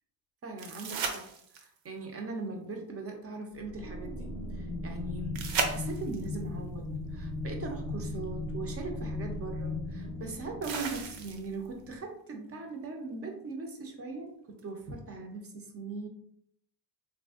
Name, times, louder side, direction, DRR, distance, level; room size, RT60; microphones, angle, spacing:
voice 1, 0.4-1.3 1.5-16.1, right 3 dB, 35° right, 2 dB, 0.4 m, -40 dB
sound 1, 0.6-1.9 5.3-6.3 8.2-8.3 10.6-11.7 14.6-14.7, right 5 dB, 70° right, 0.6 m, -35 dB
sound 2, 3.6-11.8, left 2 dB, 40° left, 0.5 m, -37 dB
3.3 x 2.5 x 2.3 m, 0.70 s
cardioid pair, 155°, 49 cm